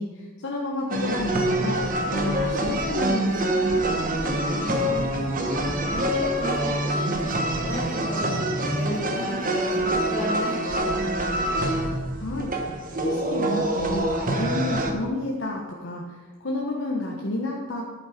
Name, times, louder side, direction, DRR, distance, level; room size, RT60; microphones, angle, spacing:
voice 1, 0.0-3.6 12.1-12.5 13.0-17.8, left 2 dB, 55° left, -2 dB, 1.2 m, -30 dB
sound 1, 0.9-14.9, right 1 dB, 40° right, 1.2 m, -25 dB
voice 2, 4.5-5.0 5.5-8.4 8.7-10.9, equal, 35° left, -3 dB, 3.3 m, -34 dB
11.5 x 8.5 x 5.1 m, 1.3 s
head